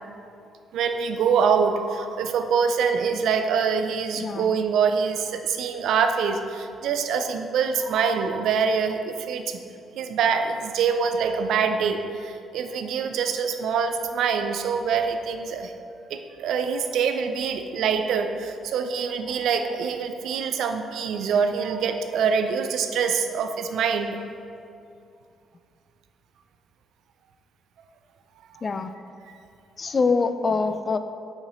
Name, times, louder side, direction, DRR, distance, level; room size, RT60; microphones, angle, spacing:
voice 1, 0.7-9.6 10.0-15.7 16.1-24.2, right 6 dB, 80° right, 7 dB, 0.4 m, -25 dB
voice 2, 4.2-4.6 28.6-28.9 29.8-31.0, left 4 dB, 35° left, 10 dB, 0.3 m, -24 dB
6.6 x 5.6 x 3.1 m, 2.5 s
cardioid pair, 90°, 0 cm